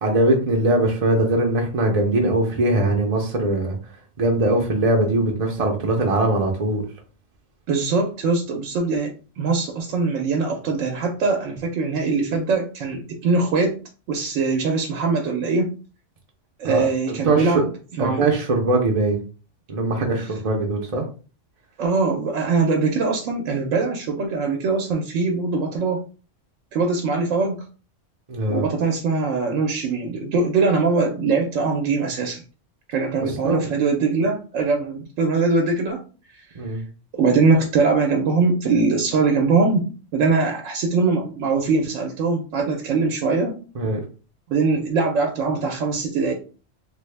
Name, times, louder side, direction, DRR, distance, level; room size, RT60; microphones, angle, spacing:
voice 1, 0.0-3.8 4.2-6.8 16.6-17.7 18.0-19.2 19.7-21.0 28.3-28.6 33.2-33.7 36.5-36.8 43.7-44.0, right 2 dB, 50° right, 1 dB, 0.5 m, -21 dB
voice 2, 7.7-13.8 14.1-15.7 16.6-17.7 18.0-18.2 21.8-26.0 26.7-27.7 28.5-32.4 32.9-36.0 36.3-36.4 37.1-39.9 40.1-43.5 44.5-46.3, right 4 dB, 85° right, 3 dB, 0.9 m, -22 dB
3.3 x 2.0 x 3.2 m, 0.36 s
omnidirectional pair, 1.3 m